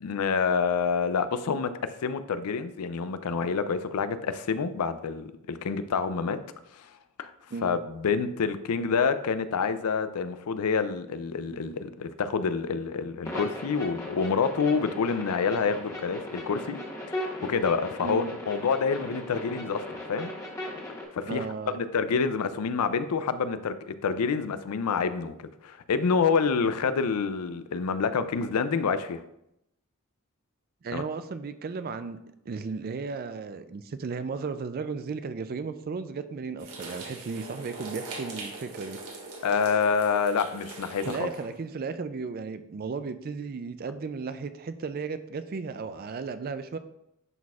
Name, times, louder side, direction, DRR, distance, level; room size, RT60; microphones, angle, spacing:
voice 1, 0.0-1.7 2.0-6.4 6.7-6.9 7.2-7.3 7.6-16.8 17.1-19.8 20.1-20.3 21.1-29.2 30.9-31.0 39.4-41.3, left 5 dB, 85° left, 12 dB, 0.4 m, -27 dB
sound 1, 13.2-21.0, left 1 dB, 15° left, 1.0 m, -38 dB
voice 2, 18.0-18.3 21.2-21.8 30.8-32.2 32.5-39.0 41.1-46.8, right 4 dB, 40° right, 11 dB, 0.4 m, -35 dB
sound 2, 36.6-41.5, right 3 dB, 90° right, 1.6 m, -41 dB
10.5 x 4.1 x 2.4 m, 0.82 s
head